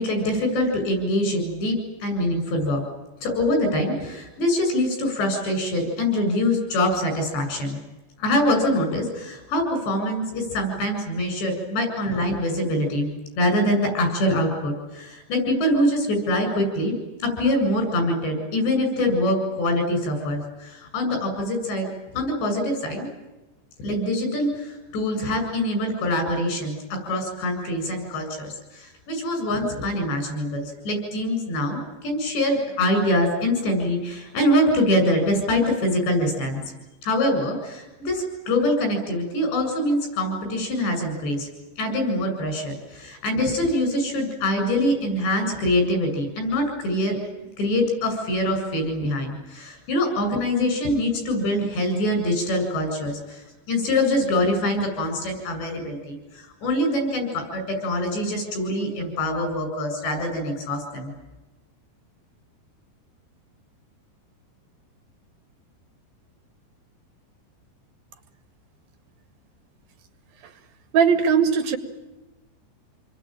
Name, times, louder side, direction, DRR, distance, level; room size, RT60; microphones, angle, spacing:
voice 1, 0.0-2.8 3.2-7.8 8.2-21.9 22.1-23.1 23.8-36.6 37.0-41.5 41.8-47.2 47.6-53.4 53.7-61.1, left 1 dB, 70° left, 5 dB, 10.0 m, -24 dB
voice 2, 70.9-71.8, right 6 dB, 60° right, 7 dB, 3.6 m, -19 dB
28.5 x 22.5 x 9.2 m, 1.1 s
omnidirectional pair, 5.2 m